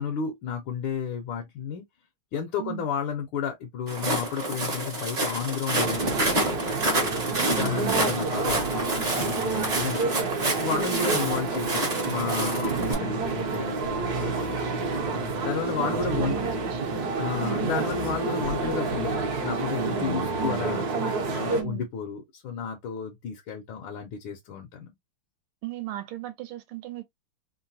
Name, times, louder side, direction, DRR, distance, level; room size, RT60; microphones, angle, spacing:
voice 1, 0.0-1.8 2.3-6.6 7.5-10.2 10.6-16.4 17.2-20.8 21.3-24.9, left 6 dB, 75° left, 1.4 m, -32 dB
Walk footsteps, 3.9-12.9, right 2 dB, 30° right, 0.7 m, -29 dB
sound 1, 5.8-21.6, right 3 dB, 60° right, 1.2 m, -29 dB
voice 2, 7.4-8.0 10.9-11.2 12.7-13.2 15.8-17.8 19.8-20.7 21.5-21.9 25.6-27.1, right 15 dB, 85° right, 1.5 m, -37 dB
3.8 x 2.1 x 2.6 m
omnidirectional pair, 2.4 m